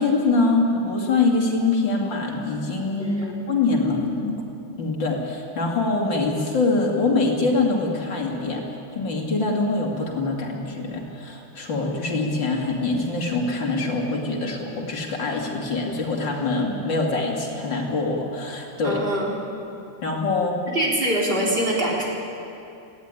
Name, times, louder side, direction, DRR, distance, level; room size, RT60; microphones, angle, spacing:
voice 1, 0.0-4.4 4.8-8.6 8.9-19.0 20.0-20.6, left 3 dB, 65° left, 0 dB, 3.3 m, -24 dB
voice 2, 3.0-3.3 18.8-19.4 20.7-22.1, right 1 dB, 25° right, -3 dB, 3.8 m, -24 dB
18.0 x 15.5 x 9.8 m, 2.7 s
omnidirectional pair, 2.1 m